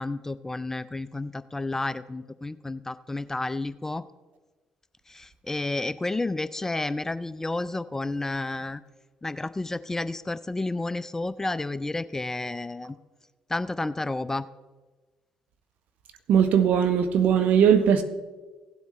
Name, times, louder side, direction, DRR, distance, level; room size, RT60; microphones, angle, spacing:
voice 1, 0.0-4.0 5.1-8.8 9.2-13.0 13.5-14.5, left 2 dB, 15° left, 15 dB, 0.4 m, -31 dB
voice 2, 16.3-18.0, right 8 dB, 65° right, 10 dB, 0.8 m, -19 dB
16.5 x 7.9 x 3.1 m, 1.3 s
hypercardioid pair, 55°, 3 cm